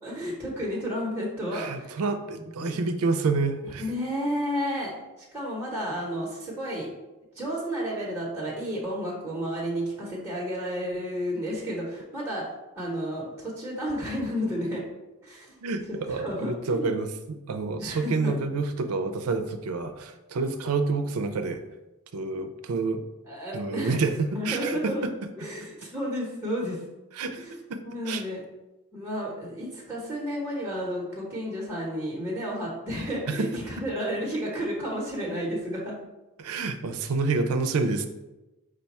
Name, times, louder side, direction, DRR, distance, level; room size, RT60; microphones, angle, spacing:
voice 1, 0.0-2.0 2.4-2.8 3.8-4.9 5.3-6.9 7.3-12.5 12.7-14.8 15.2-15.6 15.9-16.9 17.8-18.3 23.2-24.0 24.3-25.0 25.4-26.8 27.4-27.6 27.8-28.4 28.9-35.9, equal, 10° right, -6 dB, 0.9 m, -32 dB
voice 2, 1.5-3.9 15.6-21.6 22.1-23.0 23.5-25.1 27.2-27.4 27.7-27.8 28.1-28.2 33.3-33.5 36.4-38.1, right 4 dB, 75° right, 8 dB, 0.4 m, -28 dB
5.1 x 2.2 x 4.1 m, 1.0 s
head